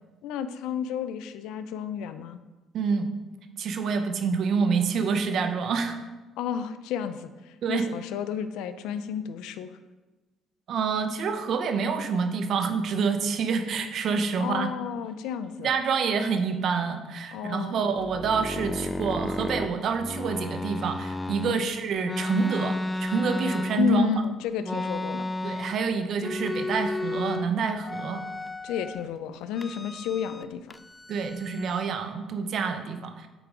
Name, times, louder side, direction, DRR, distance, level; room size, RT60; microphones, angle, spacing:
voice 1, 0.2-2.4 6.4-9.8 14.4-15.8 17.3-17.8 21.4-21.6 23.8-25.3 28.6-30.7, left 8 dB, 80° left, 12 dB, 0.4 m, -31 dB
voice 2, 2.7-3.0 3.6-6.0 7.6-7.8 10.7-14.7 15.6-24.2 25.4-28.2 31.1-33.3, right 5 dB, 60° right, 7 dB, 0.8 m, -27 dB
sound 1, 18.0-21.6 22.0-24.1 24.6-25.9 26.2-27.5 27.8-29.0 29.6-30.4 30.7-31.9, left 1 dB, 15° left, 0.3 m, -33 dB
9.2 x 4.6 x 3.8 m, 1.2 s
supercardioid pair, 80°, 0 cm